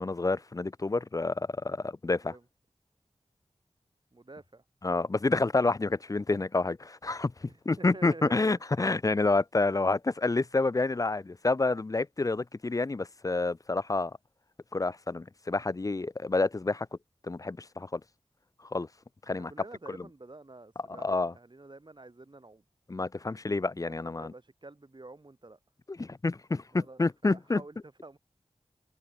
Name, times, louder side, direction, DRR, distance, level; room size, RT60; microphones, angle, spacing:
voice 1, 0.0-2.3 4.8-14.1 14.7-16.9 17.3-18.0 18.7-18.9 19.3-19.5 21.0-21.3 22.9-24.3 25.9-27.6, left 3 dB, 30° left, 0.4 m, -28 dB
voice 2, 4.1-4.6 7.5-8.6 19.3-22.6 23.9-25.6 26.7-28.2, right 2 dB, 45° right, 4.4 m, -49 dB
wide cardioid pair, 50°, 11 cm